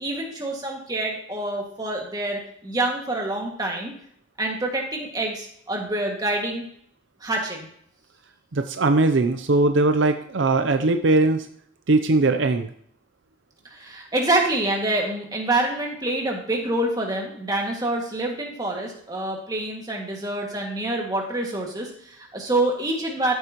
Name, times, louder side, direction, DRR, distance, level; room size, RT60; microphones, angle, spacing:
voice 1, 0.0-3.9 4.4-6.7 7.2-7.7 13.6-23.3, right 2 dB, 20° right, -1 dB, 2.0 m, -26 dB
voice 2, 8.5-11.5 11.9-12.7, right 2 dB, 70° right, 8 dB, 0.6 m, -20 dB
14.0 x 8.1 x 3.0 m, 0.65 s
head